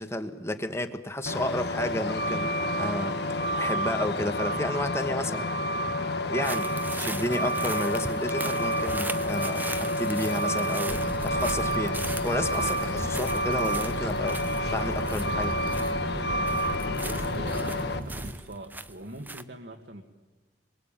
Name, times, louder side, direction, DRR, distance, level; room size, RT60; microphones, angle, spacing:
voice 1, 0.0-5.5 6.2-14.4 14.7-15.6, left 1 dB, 15° left, 8 dB, 1.5 m, -32 dB
Truck, 1.3-18.0, equal, 65° left, 1.6 m, -29 dB
sound 1, 6.4-16.2 16.5-19.4, right 3 dB, 10° right, 0.8 m, -40 dB
sound 2, 10.9-18.3, right 1 dB, 50° right, 1.8 m, -36 dB
voice 2, 17.0-20.0, right 1 dB, 65° right, 3 dB, 1.9 m, -42 dB
28.5 x 23.0 x 9.0 m, 1.3 s
head